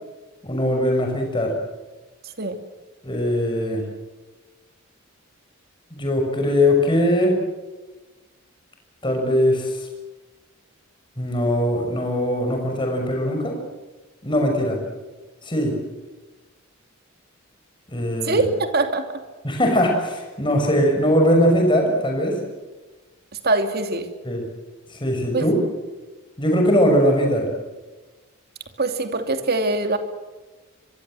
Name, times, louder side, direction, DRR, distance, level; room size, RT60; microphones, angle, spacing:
voice 1, 0.4-1.6 3.0-3.8 5.9-7.3 9.0-9.9 11.2-13.6 14.2-14.8 15.4-15.8 17.9-18.5 19.4-22.4 24.2-24.4 24.9-25.5 26.4-27.5, equal, 25° left, 2 dB, 6.2 m, -20 dB
voice 2, 18.3-19.1 23.4-24.1 25.3-25.5 28.8-30.0, right 2 dB, 50° right, 7 dB, 2.7 m, -22 dB
25.5 x 23.0 x 7.7 m, 1.2 s
head